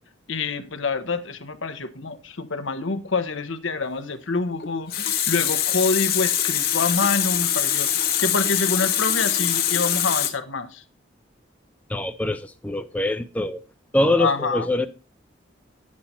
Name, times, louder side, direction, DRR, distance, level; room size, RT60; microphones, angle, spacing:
voice 1, 0.3-10.8 14.2-14.7, left 4 dB, 80° left, 1.0 m, -26 dB
Water tap faucet, 4.6-10.3, left 10 dB, 50° left, 1.2 m, -23 dB
voice 2, 11.9-13.6 13.9-14.9, left 1 dB, 5° left, 0.4 m, -24 dB
10.0 x 7.6 x 4.2 m
head